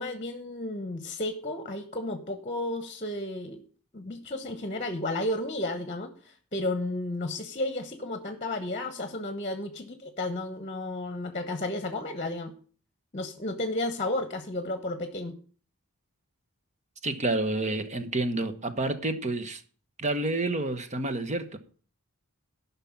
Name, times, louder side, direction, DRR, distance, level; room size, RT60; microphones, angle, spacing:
voice 1, 0.0-3.6 3.9-12.5 13.1-15.3, left 2 dB, 30° left, 1.1 m, -33 dB
voice 2, 17.0-19.6 20.0-21.6, right 2 dB, 35° right, 1.1 m, -29 dB
11.5 x 5.8 x 7.1 m
head